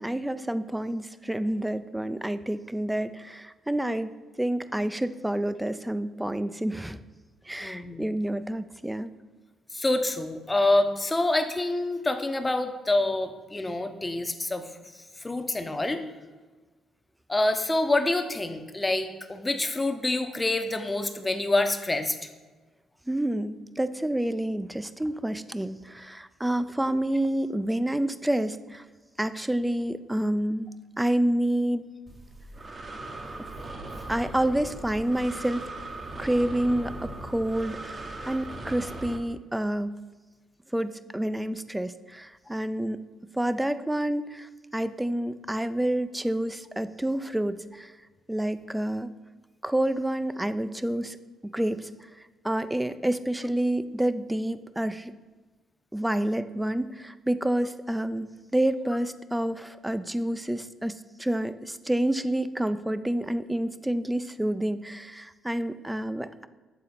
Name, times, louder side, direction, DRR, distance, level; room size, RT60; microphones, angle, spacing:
voice 1, 0.0-4.1 4.4-7.0 7.5-9.1 23.1-28.8 29.2-30.7 31.0-31.8 33.4-33.5 34.1-35.7 36.2-39.9 40.7-43.1 43.3-47.9 48.3-49.1 49.6-51.2 51.4-51.9 52.4-55.1 55.9-66.5, right 1 dB, 10° right, 13 dB, 0.4 m, -28 dB
voice 2, 7.6-8.1 9.7-16.0 17.3-22.2, left 2 dB, 20° left, 7 dB, 0.7 m, -27 dB
Breathing, 32.1-39.2, right 2 dB, 40° right, 0.9 m, -39 dB
8.2 x 3.8 x 4.2 m, 1.3 s
supercardioid pair, 60°, 0 cm